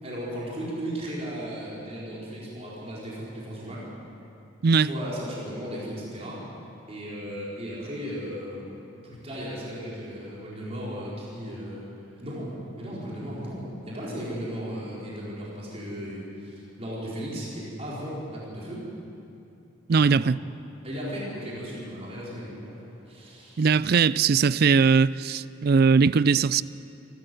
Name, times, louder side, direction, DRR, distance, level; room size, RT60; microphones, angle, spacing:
voice 1, 0.0-3.9 4.7-6.4 6.9-11.8 12.2-18.9 19.9-20.2 20.8-23.6, equal, 30° right, -6 dB, 4.5 m, -36 dB
voice 2, 19.9-20.4 23.6-26.6, right 5 dB, 50° right, 18 dB, 0.4 m, -20 dB
27.0 x 13.5 x 7.8 m, 2.7 s
head